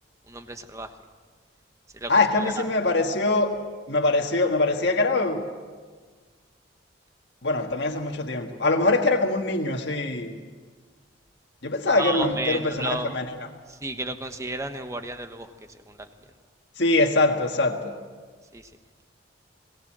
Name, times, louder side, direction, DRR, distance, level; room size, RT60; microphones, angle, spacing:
voice 1, 0.3-0.9 1.9-2.1 2.4-2.5 12.0-13.2 13.7-16.1 18.5-18.7, right 2 dB, 15° right, 7 dB, 1.2 m, -33 dB
voice 2, 2.1-3.5 3.9-5.4 7.4-10.4 11.6-13.4 16.8-17.9, left 2 dB, 60° left, 2 dB, 1.6 m, -23 dB
21.5 x 18.0 x 7.5 m, 1.5 s
head